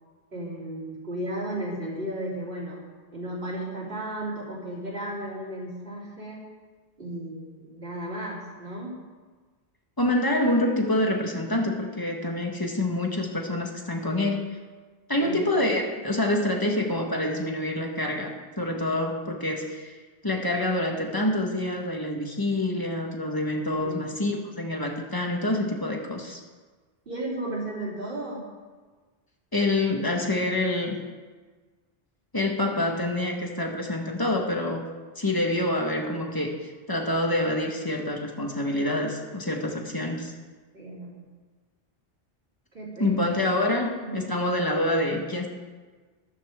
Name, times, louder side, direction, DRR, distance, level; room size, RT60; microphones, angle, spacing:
voice 1, 0.3-2.8 3.1-6.5 7.0-9.0 15.2-15.5 23.8-24.0 27.1-28.5 40.7-41.2 42.7-43.3 44.0-44.3, right 1 dB, 65° right, -8 dB, 3.8 m, -34 dB
voice 2, 10.0-14.4 15.1-19.9 20.2-26.4 29.5-31.0 32.3-34.9 35.1-40.3 43.0-45.5, left 1 dB, 20° left, 1 dB, 1.6 m, -26 dB
14.0 x 13.5 x 3.7 m, 1.4 s
omnidirectional pair, 1.0 m